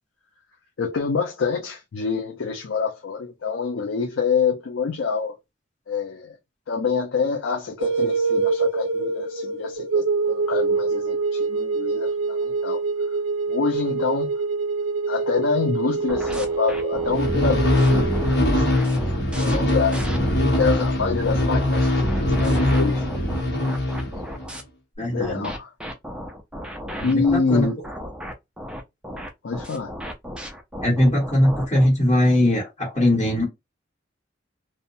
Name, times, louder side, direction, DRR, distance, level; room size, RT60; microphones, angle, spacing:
voice 1, 0.8-5.4 5.9-6.4 6.7-12.8 13.5-14.3 15.1-18.9 19.4-20.1 20.4-21.9 22.2-23.1 25.0-25.7 27.0-27.8 29.4-29.9, left 5 dB, 90° left, 0.5 m, -26 dB
sound 1, 7.8-18.4, right 4 dB, 85° right, 0.4 m, -25 dB
sound 2, 16.1-20.9 21.4-24.6 25.2-31.9, equal, 5° right, 0.4 m, -35 dB
sound 3, 17.1-24.5, left 1 dB, 60° left, 1.0 m, -22 dB
voice 2, 25.0-25.5 26.9-27.7 30.8-33.4, left 1 dB, 30° left, 1.0 m, -20 dB
2.7 x 2.1 x 2.6 m
head